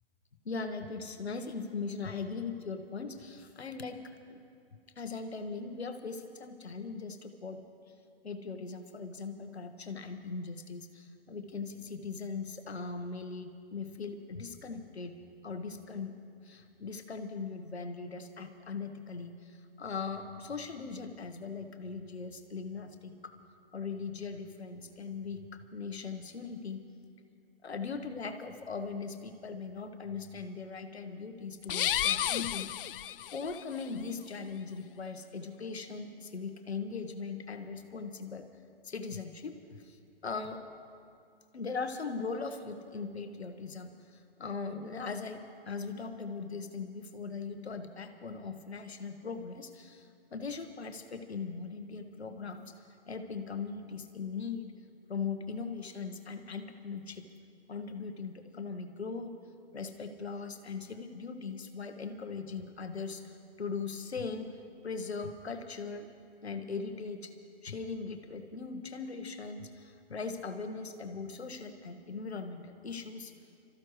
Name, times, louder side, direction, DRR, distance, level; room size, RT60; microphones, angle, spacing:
voice 1, 0.4-4.0 4.3-4.4 5.0-7.6 8.2-15.1 15.4-16.2 16.4-23.3 23.7-26.8 27.6-32.7 33.3-38.4 38.8-40.0 40.2-40.6 41.5-52.7 53.1-54.7 55.1-57.3 57.7-59.3 59.7-63.3 63.6-64.5 64.8-66.1 66.4-67.3 67.6-73.3, left 4 dB, 85° left, 7 dB, 1.4 m, -39 dB
sound 1, 31.6-33.6, left 11 dB, 60° left, 0.4 m, -32 dB
26.0 x 14.0 x 3.2 m, 2.4 s
hypercardioid pair, 130°, 31 cm